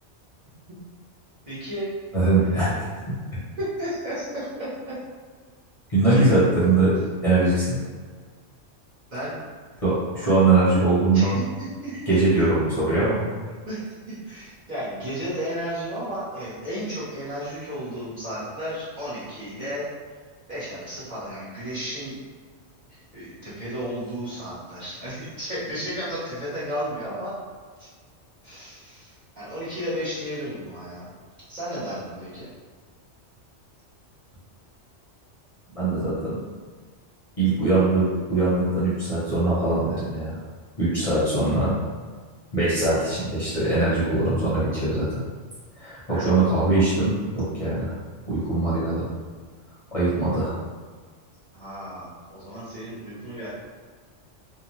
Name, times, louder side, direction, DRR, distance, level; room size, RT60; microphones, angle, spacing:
voice 1, 1.5-1.9 2.4-2.8 3.6-5.0 5.9-6.3 9.1-9.4 11.1-12.2 13.6-19.9 20.5-22.2 22.9-27.4 27.8-27.9 28.4-31.1 31.5-32.5 42.9-43.1 46.1-46.4 51.5-53.5, equal, 40° right, -11 dB, 1.1 m, -33 dB
voice 2, 2.1-2.8 5.9-6.9 7.2-7.8 9.8-11.4 12.1-13.2 35.7-36.4 37.4-38.0 38.3-40.4 40.8-41.7 42.5-45.2 45.8-47.9 48.3-49.1 49.9-50.5, right 2 dB, 35° left, -11 dB, 0.8 m, -21 dB
2.6 x 2.1 x 3.1 m, 1.5 s
omnidirectional pair, 1.2 m